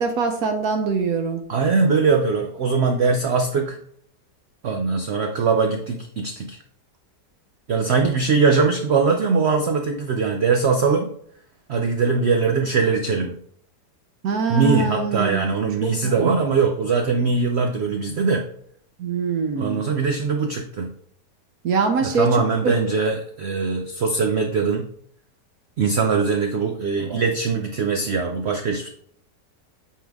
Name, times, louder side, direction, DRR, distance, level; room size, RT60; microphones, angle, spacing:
voice 1, 0.0-1.4 8.0-8.1 14.2-15.5 15.8-16.3 19.0-19.8 21.6-22.3 22.6-22.7, right 5 dB, 65° right, 5 dB, 1.1 m, -23 dB
voice 2, 1.5-3.8 4.6-6.6 7.7-11.1 11.7-13.4 14.5-18.4 19.6-20.9 22.0-24.8 25.8-28.9, right 4 dB, 80° right, 4 dB, 0.5 m, -21 dB
8.5 x 3.8 x 3.5 m, 0.64 s
omnidirectional pair, 1.9 m